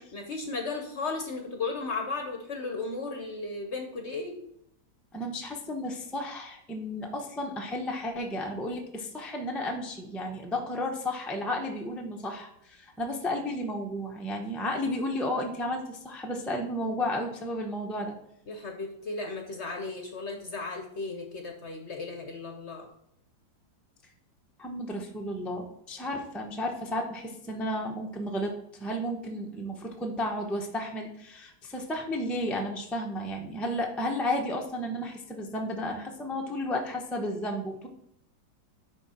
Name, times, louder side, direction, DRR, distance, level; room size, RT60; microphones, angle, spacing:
voice 1, 0.1-4.4 18.5-22.9, left 3 dB, 50° left, 4 dB, 0.9 m, -35 dB
voice 2, 5.1-18.1 24.6-28.5 28.8-37.9, left 1 dB, ahead, 1 dB, 0.3 m, -33 dB
9.9 x 3.6 x 4.3 m, 0.74 s
omnidirectional pair, 2.0 m